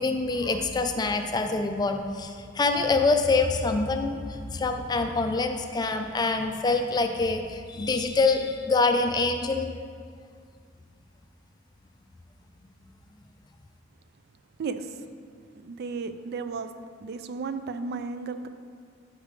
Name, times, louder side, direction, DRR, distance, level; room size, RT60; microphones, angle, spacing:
voice 1, 0.0-9.7, left 3 dB, 20° left, 6 dB, 0.4 m, -25 dB
voice 2, 15.6-16.7 17.0-18.5, right 4 dB, 55° right, 10 dB, 0.3 m, -33 dB
9.6 x 3.3 x 4.8 m, 2.1 s
head